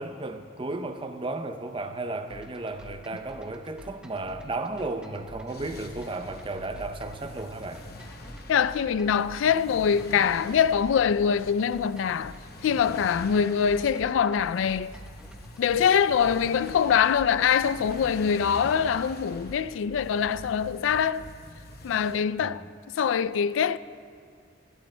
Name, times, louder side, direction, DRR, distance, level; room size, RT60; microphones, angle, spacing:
voice 1, 0.0-7.9 22.4-22.5, right 2 dB, 30° right, 0.6 m, -34 dB
sound 1, 2.3-18.2, equal, 5° right, 0.9 m, -49 dB
sound 2, 5.5-22.2, left 1 dB, 55° left, 0.9 m, -44 dB
voice 2, 8.5-12.4 12.6-14.9 15.6-21.3 21.8-22.7 22.9-23.8, left 7 dB, 80° left, 0.3 m, -24 dB
25.0 x 12.0 x 2.2 m
head